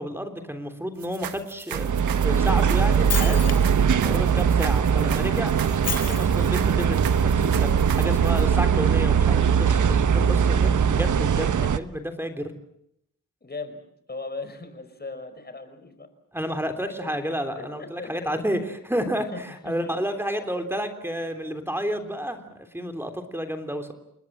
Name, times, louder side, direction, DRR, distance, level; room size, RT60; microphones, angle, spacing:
voice 1, 0.0-3.6 4.0-5.5 6.1-12.5 16.3-23.9, equal, 5° right, 7 dB, 3.4 m, -31 dB
sound 1, 1.0-8.4, right 10 dB, 90° right, 1.6 m, -38 dB
sound 2, 1.7-11.8, right 7 dB, 60° right, 1.3 m, -21 dB
Shatter, 2.8-3.8 5.6-6.6, left 6 dB, 45° left, 1.6 m, -32 dB
voice 2, 13.4-13.8 14.1-16.1 17.0-17.2 17.6-18.3 19.3-19.4 19.6-19.9 20.4-20.5, left 3 dB, 30° left, 9 dB, 5.0 m, -38 dB
29.5 x 20.5 x 7.5 m, 0.75 s
cardioid pair, 95°, 34 cm